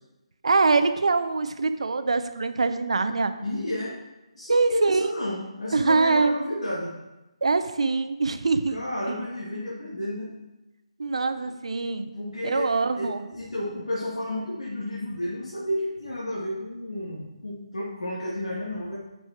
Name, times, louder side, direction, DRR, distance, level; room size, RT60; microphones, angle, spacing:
voice 1, 0.4-3.3 4.5-5.1 5.7-6.3 7.4-9.1 11.0-12.1 12.4-13.3, right 3 dB, 65° right, 10 dB, 0.6 m, -24 dB
voice 2, 3.4-4.0 4.3-6.9 8.7-10.3 12.1-19.0, left 1 dB, 75° left, -6 dB, 2.0 m, -31 dB
7.7 x 5.5 x 4.5 m, 1.0 s
figure-of-eight pair, 150°, 3 cm